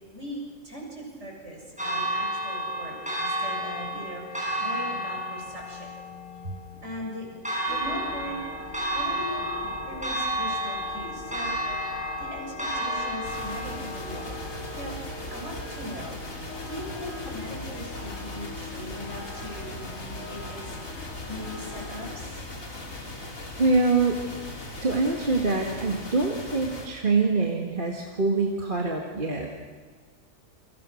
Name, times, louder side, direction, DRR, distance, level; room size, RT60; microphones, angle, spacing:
voice 1, 0.1-5.9 6.8-7.3 7.7-8.4 8.9-11.5 12.2-14.3 14.8-15.0 15.3-16.1 16.6-20.8 21.3-22.4, equal, 60° right, -1 dB, 7.8 m, -39 dB
Church bell, 1.8-15.8, equal, 5° right, 7.6 m, -32 dB
sound 1, 7.7-22.2, left 2 dB, 70° left, 2.2 m, -42 dB
sound 2, 13.2-26.9, left 2 dB, 85° left, 4.0 m, -39 dB
voice 2, 23.6-24.2 24.8-29.5, right 3 dB, 40° right, 0 dB, 2.2 m, -24 dB
29.5 x 25.0 x 6.6 m, 1.4 s
omnidirectional pair, 1.4 m